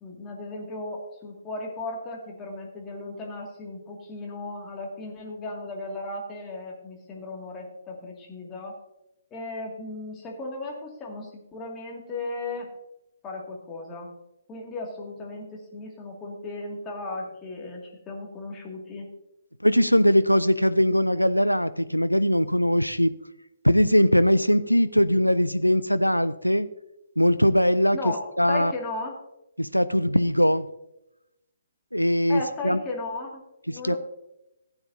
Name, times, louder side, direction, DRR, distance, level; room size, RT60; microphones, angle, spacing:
voice 1, 0.0-8.7 9.3-12.7 13.2-14.1 14.5-19.0 27.9-29.1 32.3-33.3 33.7-34.0, left 2 dB, 15° left, -1 dB, 2.2 m, -36 dB
voice 2, 19.6-23.1 23.6-26.7 27.2-28.0 28.4-28.7 29.6-30.7 31.9-32.8 33.7-34.0, equal, 90° left, 14 dB, 0.4 m, -21 dB
15.5 x 9.5 x 2.7 m, 0.89 s
figure-of-eight pair, 130°, 0 cm